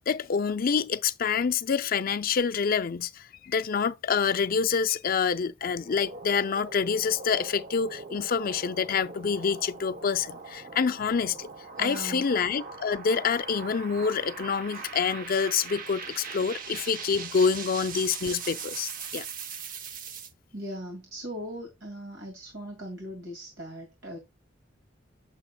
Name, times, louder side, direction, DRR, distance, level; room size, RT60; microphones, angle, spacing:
voice 1, 0.1-11.5 11.8-19.2, left 6 dB, 45° left, 0.5 m, -27 dB
sound 1, 5.7-20.3, right 5 dB, 45° right, 0.8 m, -41 dB
voice 2, 11.8-12.3 20.5-24.2, right 1 dB, 70° right, 2.3 m, -39 dB
8.2 x 6.7 x 2.3 m
head